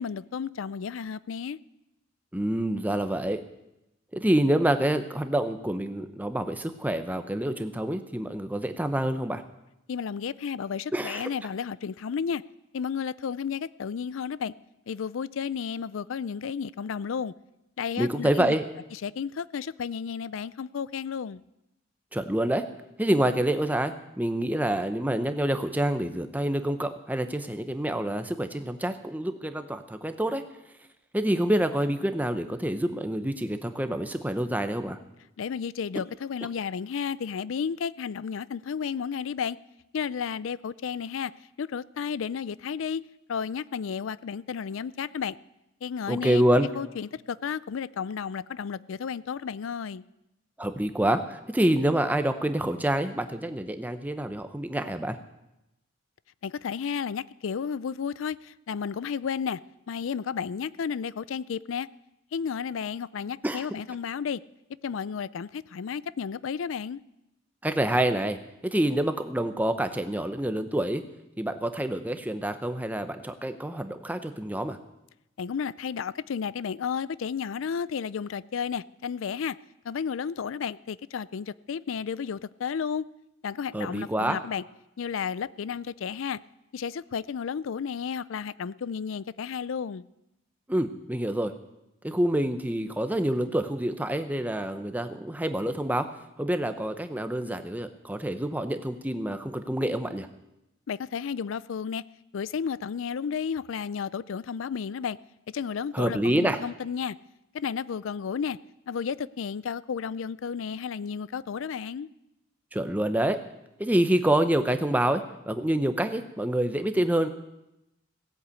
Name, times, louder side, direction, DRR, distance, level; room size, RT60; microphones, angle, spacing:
voice 1, 0.0-1.6 9.9-12.4 12.7-14.5 14.9-17.3 17.8-18.6 18.9-21.4 35.4-39.6 39.9-41.3 41.6-43.0 43.3-45.4 45.8-46.4 46.8-50.0 56.4-59.6 59.9-61.9 62.3-64.4 64.8-67.0 75.4-79.6 79.8-83.0 83.4-84.6 85.0-86.4 86.7-90.0 100.9-102.0 102.3-105.2 105.5-107.2 107.5-108.6 108.9-112.1, left 6 dB, 75° left, 0.4 m, -32 dB
voice 2, 2.3-3.4 4.1-9.4 10.9-11.3 18.0-18.6 22.1-22.6 23.0-30.4 31.1-35.0 46.1-46.7 50.6-55.1 63.4-63.6 67.6-71.0 71.4-74.8 83.7-84.4 90.7-91.5 92.0-96.1 96.4-100.3 105.9-106.6 112.7-113.4 113.8-117.3, right 1 dB, 10° right, 0.8 m, -27 dB
16.5 x 8.1 x 8.4 m
head